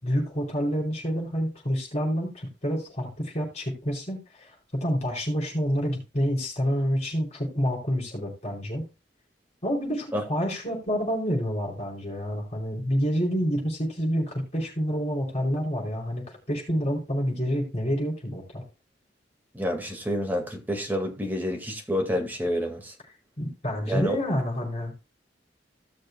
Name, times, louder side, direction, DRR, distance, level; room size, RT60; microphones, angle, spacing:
voice 1, 0.0-8.9 9.6-18.6 23.4-24.9, equal, 40° left, 4.5 m, -28 dB
voice 2, 19.5-22.9 23.9-24.2, equal, 10° right, 1.9 m, -28 dB
16.5 x 6.6 x 2.3 m
head